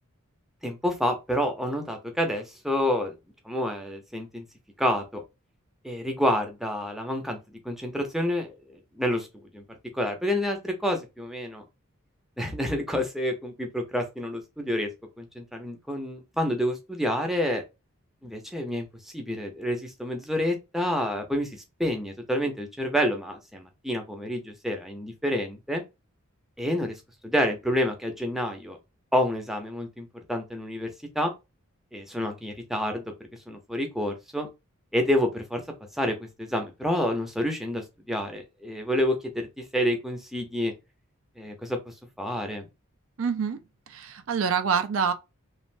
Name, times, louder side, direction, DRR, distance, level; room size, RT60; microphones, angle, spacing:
voice 1, 0.6-3.1 3.4-4.4 4.8-5.2 5.8-7.4 7.6-9.3 9.5-9.6 9.9-11.6 12.4-14.9 15.2-17.6 18.2-18.9 19.1-21.5 21.8-25.8 26.6-27.0 27.2-28.8 29.1-31.3 31.9-33.0 33.5-34.5 34.9-35.6 36.0-39.5 39.7-40.7 41.4-41.8 42.2-42.7, equal, ahead, 0.7 m, -28 dB
voice 2, 43.2-43.6 43.9-45.1, right 6 dB, 65° right, 0.4 m, -26 dB
3.2 x 2.5 x 2.5 m
head